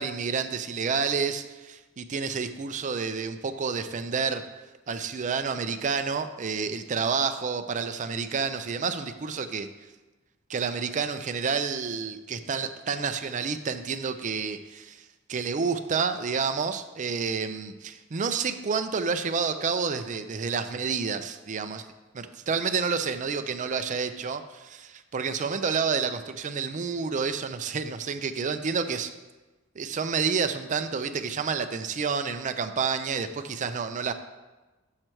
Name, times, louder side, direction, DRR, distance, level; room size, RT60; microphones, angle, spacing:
voice 1, 0.0-4.4 4.9-9.7 10.5-15.0 15.3-21.9 22.1-29.1 29.8-34.1, right 5 dB, 40° right, 9 dB, 0.4 m, -29 dB
6.5 x 6.1 x 4.4 m, 1.2 s
head